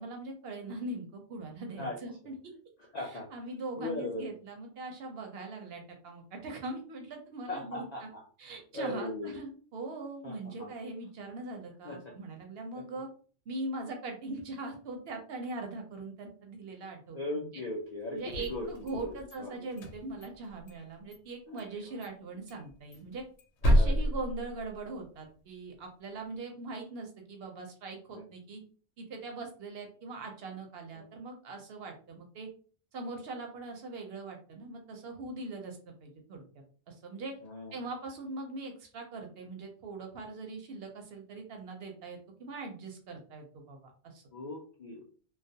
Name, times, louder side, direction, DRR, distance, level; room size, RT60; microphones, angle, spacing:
voice 1, 0.0-2.5 3.0-7.8 8.4-13.1 13.5-17.6 18.1-23.2 23.6-28.6 29.0-32.5 32.9-36.4 36.9-37.3 37.7-43.8 44.0-44.2, right 2 dB, 65° right, 3 dB, 0.7 m, -41 dB
voice 2, 2.9-3.3 3.8-4.2 7.5-8.3 8.7-9.4 10.2-10.7 11.8-12.0 12.7-12.8 17.1-19.5 21.5-22.1 23.7-24.0 28.1-28.3 30.9-31.1 37.4-37.8 44.3-45.0, left 2 dB, 60° left, -2 dB, 0.4 m, -39 dB
sound 1, 18.2-19.4 19.7-20.8 21.1-21.2 21.6-21.7 22.0-22.1 22.5-25.1, equal, 75° left, 0.9 m, -30 dB
2.3 x 2.1 x 2.6 m, 0.42 s
omnidirectional pair, 1.2 m